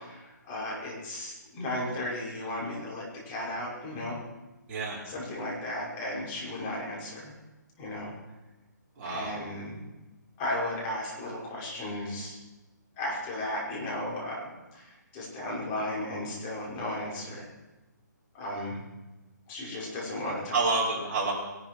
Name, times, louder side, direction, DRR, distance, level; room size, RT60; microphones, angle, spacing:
voice 1, 0.0-4.2 5.1-7.3 7.8-8.1 9.0-9.8 10.4-12.4 13.0-17.5 18.3-18.8 19.5-20.6, left 1 dB, 25° left, -5 dB, 6.2 m, -35 dB
voice 2, 4.7-5.0 9.0-9.3 20.2-21.3, right 3 dB, 35° right, -6 dB, 5.5 m, -29 dB
22.0 x 12.5 x 4.8 m, 1.1 s
hypercardioid pair, 150°, 10 cm